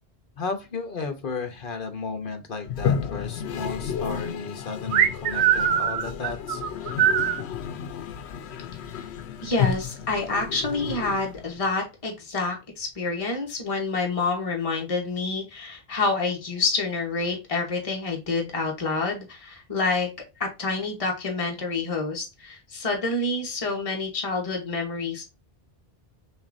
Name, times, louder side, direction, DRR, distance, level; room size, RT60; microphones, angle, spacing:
voice 1, 0.4-6.6, left 4 dB, 55° left, 7 dB, 1.0 m, -34 dB
Toilet flush, 2.6-11.7, left 8 dB, 75° left, 0.9 m, -32 dB
sound 1, 4.9-7.4, right 9 dB, 85° right, 1.0 m, -22 dB
voice 2, 9.4-20.1 20.4-25.2, left 3 dB, 30° left, 0 dB, 1.2 m, -28 dB
6.6 x 2.5 x 2.6 m, 0.27 s
omnidirectional pair, 1.1 m